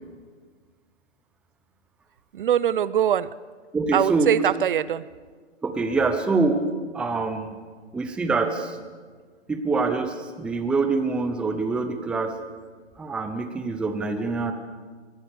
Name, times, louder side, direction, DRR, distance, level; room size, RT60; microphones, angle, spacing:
voice 1, 2.3-3.3 3.9-5.1 14.5-14.6, right 10 dB, 45° right, 19 dB, 0.6 m, -22 dB
voice 2, 3.7-4.3 5.6-6.6 6.9-7.6 7.9-8.8 9.5-12.3 13.0-14.5, right 3 dB, 5° right, 8 dB, 0.6 m, -25 dB
23.0 x 18.5 x 6.8 m, 1.5 s
hypercardioid pair, 140°, 36 cm